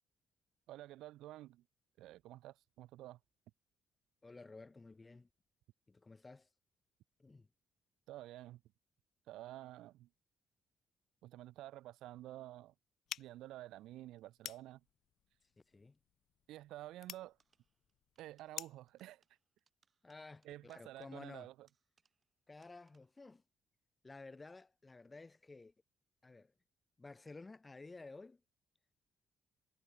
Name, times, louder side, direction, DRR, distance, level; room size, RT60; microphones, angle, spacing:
voice 1, 0.7-1.6 2.0-3.2 8.1-8.6 9.3-10.1 11.2-12.7 13.2-14.8 16.5-17.4 18.2-19.2 20.4-21.7, right 15 dB, 90° right, 0.4 m, -51 dB
voice 2, 4.2-5.3 5.9-6.5 7.2-7.5 15.7-16.0 20.0-21.5 22.5-23.4 24.0-25.7 26.2-26.5 27.0-28.4, left 3 dB, 25° left, 1.3 m, -53 dB
sound 1, 13.1-18.9, left 11 dB, 70° left, 0.6 m, -51 dB
sound 2, 17.4-22.4 22.6-23.3, right 5 dB, 40° right, 7.0 m, -80 dB
cardioid pair, 90°, 0 cm